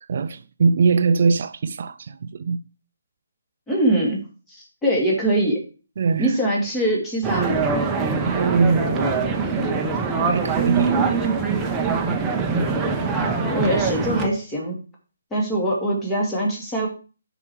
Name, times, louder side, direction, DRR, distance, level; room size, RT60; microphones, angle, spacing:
voice 1, 0.1-2.6 6.0-6.4 8.2-9.3 10.3-11.0, right 4 dB, 50° right, 0.4 m, -22 dB
voice 2, 3.7-4.2 4.5-5.6 6.2-7.6 13.5-14.8 15.3-16.9, right 1 dB, 10° left, 2.7 m, -23 dB
sound 1, 7.2-14.3, right 4 dB, 10° right, 1.1 m, -23 dB
9.3 x 5.0 x 4.8 m
figure-of-eight pair, 150°, 0 cm